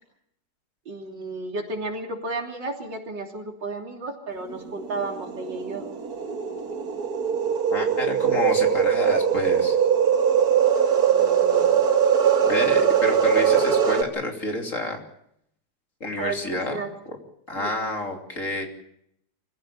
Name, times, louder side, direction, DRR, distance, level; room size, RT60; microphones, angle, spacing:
voice 1, 0.9-5.9 11.1-11.7 16.2-16.9 17.6-17.7, right 3 dB, 75° right, 2 dB, 3.9 m, -33 dB
sound 1, 4.9-14.0, right 8 dB, 55° right, 2.0 m, -21 dB
voice 2, 7.7-9.8 12.4-15.0 16.0-16.8 17.1-17.2 17.5-18.7, left 1 dB, 40° left, 3 dB, 3.4 m, -29 dB
24.5 x 16.0 x 8.6 m, 0.73 s
omnidirectional pair, 2.0 m